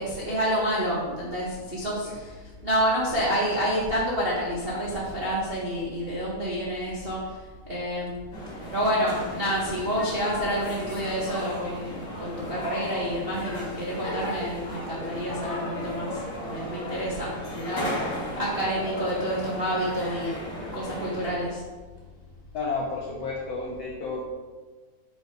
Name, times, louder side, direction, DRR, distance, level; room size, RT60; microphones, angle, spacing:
voice 1, 0.0-8.1 8.5-20.4 20.7-21.6, equal, 55° right, -6 dB, 0.6 m, -29 dB
sound 1, 8.3-21.3, left 1 dB, 30° left, 2.8 m, -35 dB
voice 2, 22.5-24.2, left 3 dB, 75° left, -3 dB, 1.4 m, -31 dB
9.6 x 5.5 x 4.0 m, 1.4 s
omnidirectional pair, 4.0 m